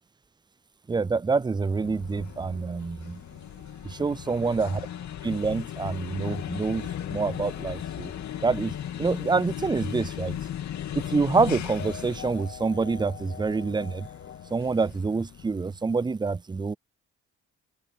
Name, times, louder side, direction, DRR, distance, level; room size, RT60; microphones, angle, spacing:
voice 1, 0.9-3.2 3.8-4.8 5.2-8.1 8.4-8.7 9.0-10.4 10.9-14.1 14.5-16.7, right 4 dB, 15° right, 0.4 m, -27 dB
Drowning in Thin (Drone and Delay Synth), 1.0-9.2, right 14 dB, 85° right, 7.7 m, -59 dB
sound 1, 1.4-15.9, left 10 dB, 65° left, 2.6 m, -37 dB
sound 2, 6.0-14.8, left 7 dB, 45° left, 1.6 m, -46 dB
open air
cardioid pair, 90°, 30 cm